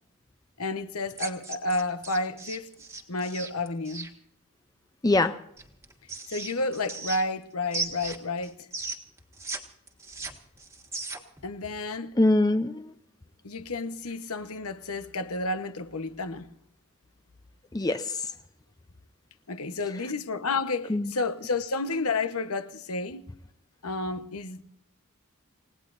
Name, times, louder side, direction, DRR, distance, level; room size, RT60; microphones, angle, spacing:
voice 1, 0.6-2.7 3.1-4.1 6.3-8.7 11.4-12.2 13.4-16.5 19.5-23.2 23.8-24.6, left 2 dB, 80° left, 1.1 m, -31 dB
sound 1, 1.1-4.1 5.6-7.4 7.7-9.6 9.9-11.4, right 3 dB, 10° right, 1.5 m, -36 dB
voice 2, 5.0-5.4 12.2-12.9 17.7-18.3 20.9-21.1, left 2 dB, 15° left, 0.5 m, -23 dB
29.0 x 18.0 x 2.6 m
head